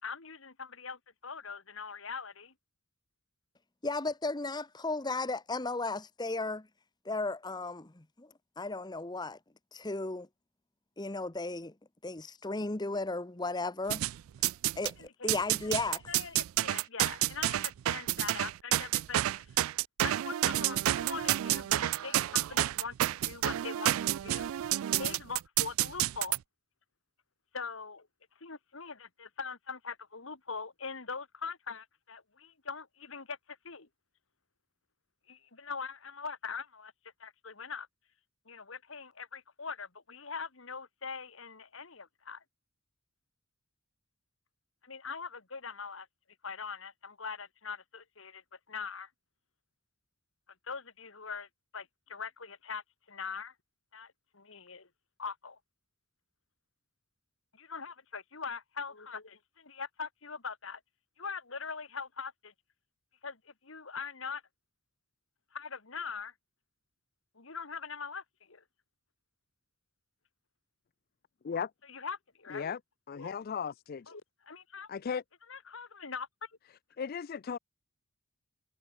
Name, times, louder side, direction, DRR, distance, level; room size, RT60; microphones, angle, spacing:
voice 1, 0.0-2.5 15.0-15.3 15.7-15.8 16.1-19.6 20.0-24.5 25.0-26.4 27.5-28.1 28.4-33.9 35.3-36.9 37.2-37.9 38.5-42.4 44.8-46.1 46.4-48.4 48.7-49.1 50.7-53.5 53.9-54.9 55.2-55.6 57.5-60.8 61.2-62.5 63.2-64.4 65.5-66.3 67.4-68.6 71.8-72.7 73.1-73.3 74.1-74.9 75.5-76.5, left 5 dB, 65° left, 2.0 m, -42 dB
voice 2, 3.8-6.7 7.0-8.3 8.6-9.4 9.7-10.3 11.0-11.7 12.0-14.0 14.8-16.0 21.7-21.9, left 3 dB, 20° left, 0.9 m, -35 dB
sound 1, 13.9-14.9 15.3-26.4, right 14 dB, 75° right, 0.3 m, -30 dB
voice 3, 73.1-74.1 74.9-75.2 77.0-77.6, left 6 dB, 45° left, 0.4 m, -36 dB
head